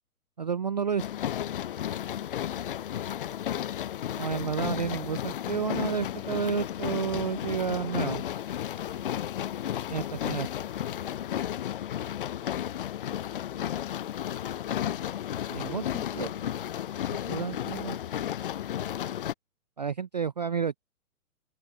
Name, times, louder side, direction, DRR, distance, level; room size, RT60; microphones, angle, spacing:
voice 1, 0.4-1.1 4.2-8.2 9.9-10.5 15.5-16.3 17.3-18.0 19.8-20.8, right 7 dB, 30° right, 0.4 m, -31 dB
sound 1, 1.0-19.3, left 11 dB, 35° left, 0.6 m, -33 dB
open air
figure-of-eight pair, 125°, 45 cm